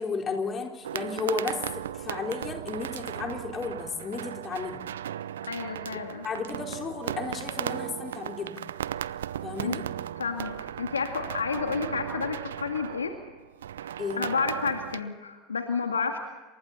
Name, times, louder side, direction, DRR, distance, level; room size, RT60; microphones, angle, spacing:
voice 1, 0.0-4.8 5.9-8.6 9.4-9.8 14.0-14.2, left 4 dB, 30° left, 2 dB, 4.4 m, -33 dB
sound 1, 0.8-15.0, right 10 dB, 70° right, 0.6 m, -36 dB
voice 2, 5.5-6.2 9.6-9.8 10.2-13.1 13.8-16.2, left 5 dB, 80° left, 5 dB, 2.0 m, -30 dB
28.5 x 26.5 x 4.3 m, 1.2 s
figure-of-eight pair, 80°, 0 cm